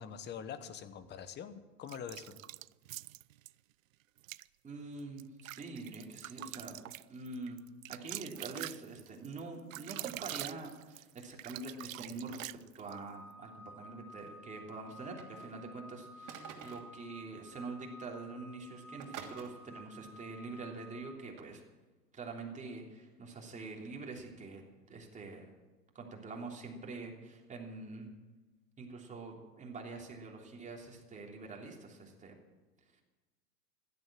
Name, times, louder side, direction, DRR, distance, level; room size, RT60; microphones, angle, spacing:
voice 1, 0.0-2.4, left 7 dB, 20° left, 12 dB, 1.2 m, -44 dB
sound 1, 1.9-3.5 4.2-4.5 5.0-13.0, right 16 dB, 55° right, 0.5 m, -45 dB
voice 2, 4.6-6.8 7.1-7.6 7.9-12.4 12.8-21.6 22.1-25.5 25.9-28.1 28.8-32.4, right 3 dB, 15° right, 0 dB, 3.2 m, -45 dB
sound 2, 12.8-21.1, right 1 dB, 60° left, 3.0 m, -53 dB
sound 3, 14.8-15.6 16.3-17.0 17.8-17.9 18.1-18.4 19.0-19.5 21.4-21.5, right 8 dB, 40° right, 3.1 m, -48 dB
16.0 x 12.0 x 7.5 m, 1.2 s
hypercardioid pair, 105°, 48 cm